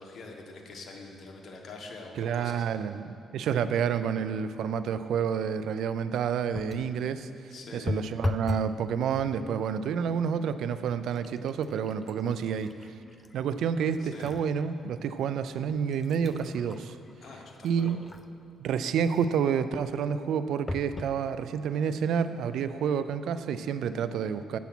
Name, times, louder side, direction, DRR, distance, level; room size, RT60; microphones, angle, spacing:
voice 1, 0.0-2.6 7.5-7.9 14.0-14.3 17.2-17.9, left 3 dB, 55° left, 1 dB, 1.4 m, -45 dB
voice 2, 2.2-12.7 13.3-17.0 17.6-18.0 18.6-24.6, right 7 dB, 75° right, 12 dB, 0.4 m, -29 dB
sound 1, 6.5-7.0 7.9-8.8 9.1-9.6 10.4-10.5 10.9-14.5 15.0-15.1 15.7-18.5 20.7-21.2 21.9-22.0 22.2-22.3, left 2 dB, 15° left, 0.3 m, -37 dB
8.2 x 7.0 x 6.0 m, 2.4 s
cardioid pair, 90°, 0 cm